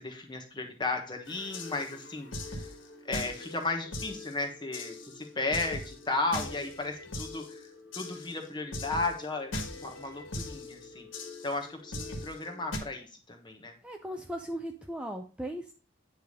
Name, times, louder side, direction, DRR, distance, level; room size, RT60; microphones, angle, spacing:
voice 1, 0.0-2.7 3.1-7.6 8.0-11.1 11.4-13.7, left 3 dB, 25° left, 4 dB, 1.2 m, -35 dB
sound 1, 1.3-12.8, left 2 dB, 90° left, 1.5 m, -41 dB
voice 2, 13.8-15.7, right 1 dB, 5° right, 3 dB, 0.4 m, -37 dB
9.1 x 3.3 x 5.3 m, 0.36 s
head